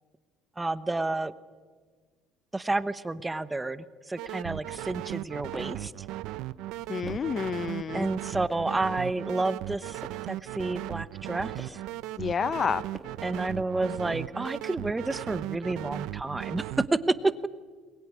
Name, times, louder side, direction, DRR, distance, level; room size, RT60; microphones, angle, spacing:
voice 1, 0.6-1.3 2.5-6.0 7.9-10.0 10.3-11.8 13.2-17.5, right 2 dB, 10° right, 14 dB, 0.9 m, -30 dB
sound 1, 4.2-16.9, right 16 dB, 75° right, 0.8 m, -37 dB
sound 2, 5.1-5.9 6.6-7.5 8.1-8.8 9.5-10.4 11.1-11.9 12.6-13.4, left 1 dB, 5° left, 2.3 m, -49 dB
voice 2, 6.9-8.1 12.2-12.8, left 6 dB, 30° left, 18 dB, 0.8 m, -29 dB
22.5 x 21.0 x 9.7 m, 1.5 s
cardioid pair, 125°, 0 cm